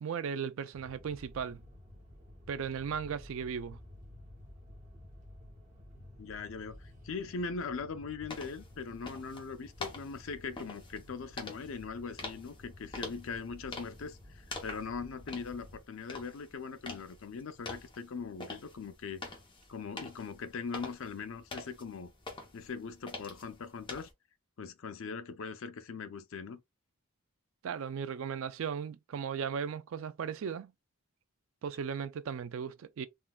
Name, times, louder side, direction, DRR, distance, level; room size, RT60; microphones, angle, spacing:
voice 1, 0.0-1.6 2.5-3.8 27.6-30.7 31.6-33.1, right 7 dB, 65° right, 0.3 m, -36 dB
sound 1, 0.7-15.8, left 1 dB, 35° right, 0.7 m, -53 dB
voice 2, 6.2-19.2 19.7-22.1 22.5-24.1 24.6-26.6, left 5 dB, 60° left, 0.4 m, -41 dB
sound 2, 8.3-24.1, left 3 dB, 20° left, 0.7 m, -47 dB
3.7 x 2.2 x 2.2 m
head